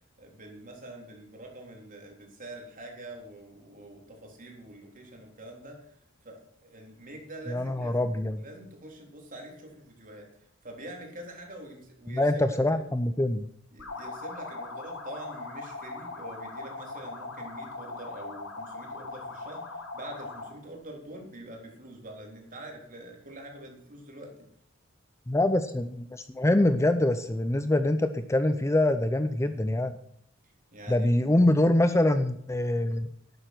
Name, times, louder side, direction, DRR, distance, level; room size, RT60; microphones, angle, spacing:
voice 1, 0.2-8.1 8.4-12.3 12.7-12.8 13.7-24.3 30.4-31.1, right 1 dB, 40° right, 1 dB, 3.7 m, -45 dB
voice 2, 7.5-8.4 12.1-13.4 25.3-29.9 30.9-33.1, left 1 dB, 15° left, 10 dB, 0.6 m, -24 dB
sound 1, 13.8-20.6, left 3 dB, 75° left, 3.3 m, -40 dB
12.0 x 8.9 x 6.1 m, 0.69 s
head